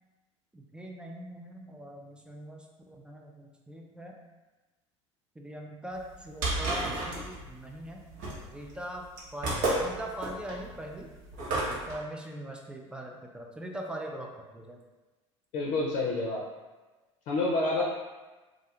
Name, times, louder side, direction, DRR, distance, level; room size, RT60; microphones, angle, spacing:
voice 1, 0.5-4.2 5.4-8.1 8.4-9.1 9.3-11.1 11.8-14.8, right 1 dB, 5° right, 1 dB, 0.4 m, -41 dB
sound 1, 6.0-11.9, right 2 dB, 50° right, 0.9 m, -32 dB
voice 2, 15.5-16.4 17.3-17.8, left 2 dB, 50° left, -4 dB, 0.6 m, -28 dB
2.4 x 2.2 x 2.9 m, 1.2 s
hypercardioid pair, 70°, 16 cm